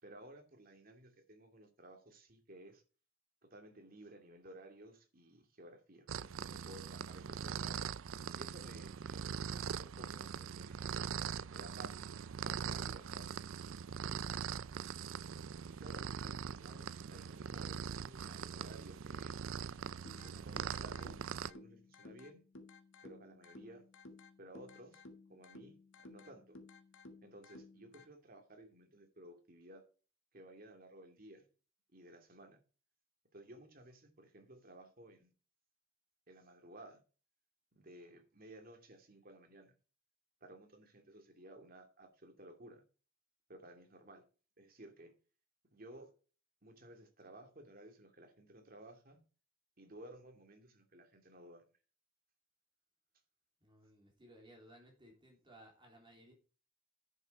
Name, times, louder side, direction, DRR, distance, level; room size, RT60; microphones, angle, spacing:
voice 1, 0.0-2.8 3.4-7.8 8.4-12.1 12.3-13.3 14.1-14.4 15.7-19.4 20.2-22.4 23.0-23.8 24.4-25.8 26.0-26.6 27.2-29.8 30.3-31.5 31.9-32.6 33.3-35.3 36.3-37.0 37.8-39.7 40.4-42.8 43.5-44.2 44.6-45.1 45.7-46.1 46.6-49.2 49.8-51.6, right 1 dB, 45° right, 2.6 m, -56 dB
sound 1, 6.1-21.5, right 7 dB, 85° right, 0.5 m, -42 dB
sound 2, 20.0-28.0, left 2 dB, 65° left, 1.6 m, -57 dB
voice 2, 53.6-56.3, right 1 dB, 25° right, 3.3 m, -60 dB
10.5 x 6.8 x 4.8 m
head